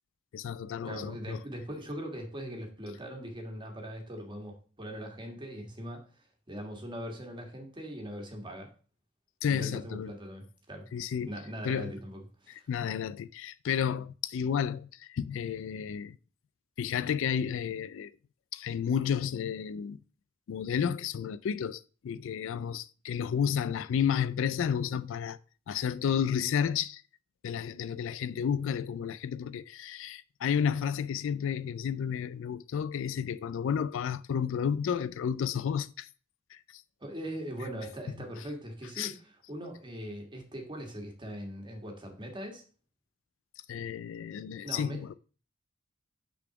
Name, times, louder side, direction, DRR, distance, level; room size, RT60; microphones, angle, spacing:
voice 1, 0.3-1.4 9.4-10.1 10.9-11.3 11.6-11.9 12.5-16.2 16.8-18.1 18.5-20.0 20.5-25.4 25.7-27.0 27.4-36.1 36.5-36.8 39.0-39.1 43.7-45.1, left 8 dB, 65° left, 0.3 m, -31 dB
voice 2, 0.8-6.0 6.5-8.7 9.5-10.9 11.3-12.7 37.0-39.2 39.5-42.6 44.6-45.0, equal, 25° right, 1.6 m, -40 dB
5.8 x 4.1 x 5.8 m
head